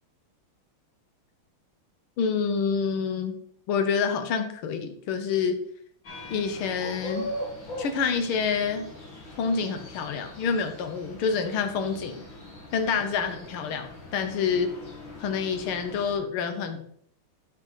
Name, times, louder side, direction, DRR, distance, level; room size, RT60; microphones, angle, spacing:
voice 1, 2.2-3.4 3.7-5.6 6.3-7.3 7.8-8.9 9.4-12.2 12.7-14.7 15.2-16.8, left 6 dB, 80° left, 7 dB, 1.9 m, -27 dB
sound 1, 6.0-16.2, left 1 dB, 65° left, 2.8 m, -41 dB
7.1 x 5.3 x 5.5 m, 0.65 s
omnidirectional pair, 2.3 m